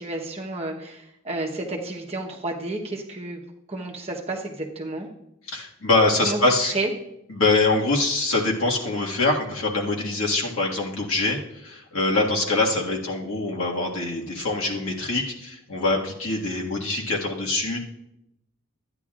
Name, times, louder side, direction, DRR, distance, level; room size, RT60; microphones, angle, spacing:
voice 1, 0.0-3.4 3.7-5.1 6.2-6.9, right 2 dB, 30° right, 0 dB, 1.0 m, -31 dB
voice 2, 5.5-6.7 7.3-17.8, left 2 dB, 80° left, -2 dB, 1.8 m, -24 dB
13.5 x 9.8 x 2.5 m, 0.81 s
head